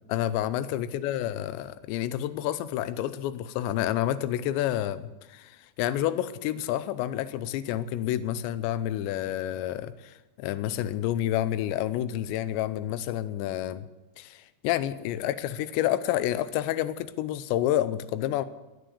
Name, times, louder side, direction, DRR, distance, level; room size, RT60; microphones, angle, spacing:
voice 1, 0.1-5.5 5.8-13.8 14.2-18.4, left 12 dB, 85° left, 13 dB, 2.9 m, -29 dB
19.0 x 10.0 x 6.9 m, 1.1 s
omnidirectional pair, 5.2 m